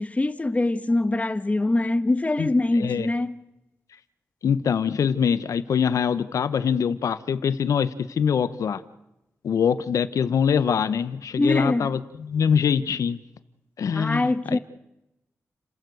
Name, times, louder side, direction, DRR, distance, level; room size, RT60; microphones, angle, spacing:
voice 1, 0.0-3.3 11.4-11.9 13.9-14.6, left 2 dB, 25° left, 1.3 m, -23 dB
voice 2, 2.8-3.1 4.4-8.8 9.4-13.2 13.8-14.6, left 7 dB, 90° left, 1.0 m, -24 dB
30.0 x 15.5 x 7.9 m
wide cardioid pair, 80°, 5 cm